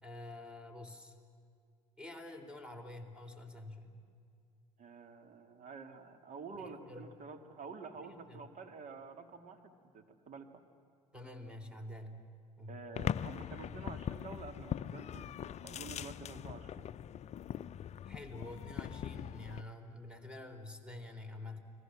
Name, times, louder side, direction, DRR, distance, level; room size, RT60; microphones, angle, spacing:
voice 1, 0.0-1.1 2.0-3.9 6.5-7.1 8.0-8.4 11.1-12.2 12.6-12.8 18.0-21.6, left 1 dB, 5° right, 7 dB, 3.5 m, -48 dB
voice 2, 4.8-10.5 12.7-16.9, right 4 dB, 45° right, 7 dB, 2.6 m, -49 dB
sound 1, 12.9-19.6, left 9 dB, 40° left, 0.6 m, -41 dB
30.0 x 21.5 x 7.6 m, 2.4 s
hypercardioid pair, 65°, 18 cm